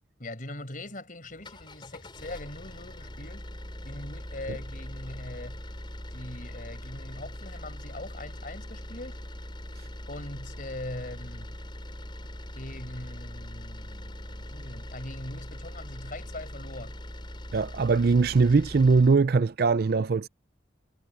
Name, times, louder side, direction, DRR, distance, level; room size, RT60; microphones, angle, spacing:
voice 1, 0.2-3.5 3.8-5.6 6.1-9.2 10.1-11.5 12.5-17.0, left 1 dB, 45° left, 5.0 m, -41 dB
sound 1, 1.3-19.2, equal, 25° left, 7.6 m, -41 dB
voice 2, 17.5-20.3, right 4 dB, 55° right, 0.4 m, -21 dB
head